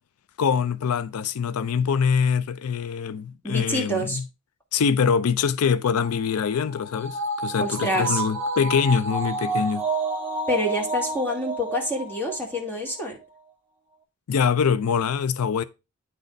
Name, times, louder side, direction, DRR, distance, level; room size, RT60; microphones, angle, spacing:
voice 1, 0.4-4.2 4.7-9.8 14.3-15.6, left 6 dB, 80° left, 0.4 m, -24 dB
voice 2, 3.4-4.2 7.6-8.2 10.5-13.2, left 1 dB, 10° left, 2.2 m, -27 dB
sound 1, 6.0-12.6 13.0-13.1, right 3 dB, 10° right, 1.7 m, -30 dB
9.4 x 4.1 x 5.1 m
head